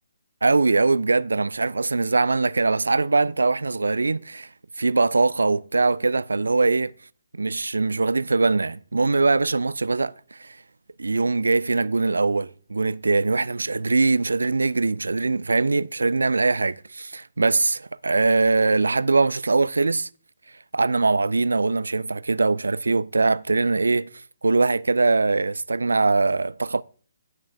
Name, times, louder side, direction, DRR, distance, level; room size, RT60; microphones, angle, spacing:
voice 1, 0.4-4.5 4.8-6.9 7.3-10.6 11.0-20.1 20.7-24.1 24.4-26.8, right 3 dB, 70° right, 0.3 m, -22 dB
16.5 x 6.2 x 2.5 m
figure-of-eight pair, 135°, 0 cm